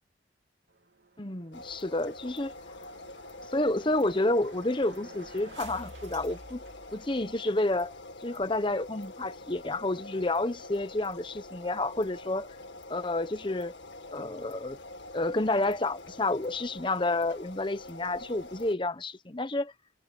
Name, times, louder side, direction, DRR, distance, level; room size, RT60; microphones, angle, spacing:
sound 1, 0.7-7.5, right 2 dB, 85° right, 3.4 m, -52 dB
voice 1, 1.2-2.5 3.5-6.6 6.9-7.9 8.2-12.5 12.9-13.7 14.1-14.8 15.1-19.7, left 2 dB, 25° left, 1.1 m, -30 dB
sound 2, 1.5-18.7, left 2 dB, 85° left, 1.9 m, -46 dB
head